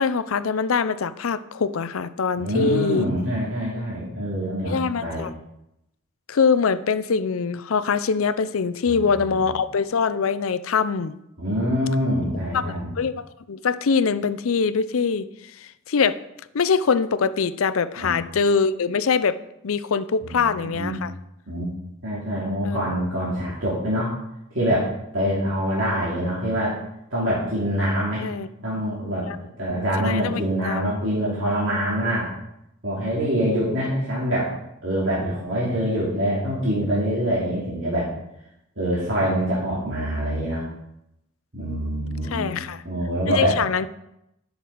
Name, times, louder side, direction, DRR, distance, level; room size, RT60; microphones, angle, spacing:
voice 1, 0.0-3.0 4.6-5.3 6.3-11.1 12.5-15.3 15.6-16.2 16.5-19.4 19.6-21.1 22.6-22.8 28.2-28.5 29.2-29.4 29.7-30.9 42.3-42.8 43.3-43.9, left 5 dB, 85° left, 14 dB, 0.5 m, -23 dB
voice 2, 2.4-5.3 8.9-9.4 11.4-12.9 18.0-18.1 20.2-21.0 21.5-21.7 22.0-24.1 24.5-26.8 27.1-28.2 28.6-29.3 29.6-32.3 32.8-34.5 34.8-38.1 38.8-40.6 41.5-42.6 42.8-43.6, equal, 70° right, -7 dB, 2.6 m, -25 dB
11.0 x 6.7 x 4.6 m, 0.84 s
head